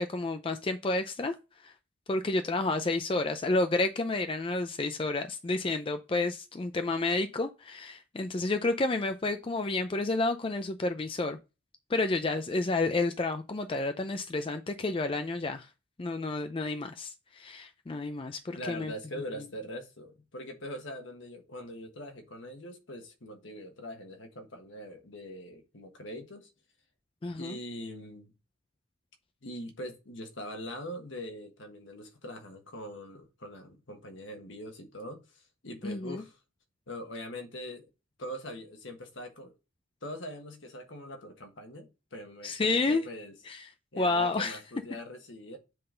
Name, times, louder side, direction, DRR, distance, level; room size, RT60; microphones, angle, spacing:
voice 1, 0.0-1.3 1.6-1.7 2.1-11.4 11.9-15.7 16.0-18.9 27.2-27.6 35.8-36.2 42.4-43.0 43.5-43.7 44.0-44.6, left 2 dB, 25° left, 0.4 m, -30 dB
voice 2, 18.5-26.5 27.3-28.3 29.4-36.4 36.9-37.9 38.2-39.5 40.0-43.4 43.9-45.6, equal, 65° left, 1.4 m, -42 dB
7.7 x 3.9 x 3.8 m
head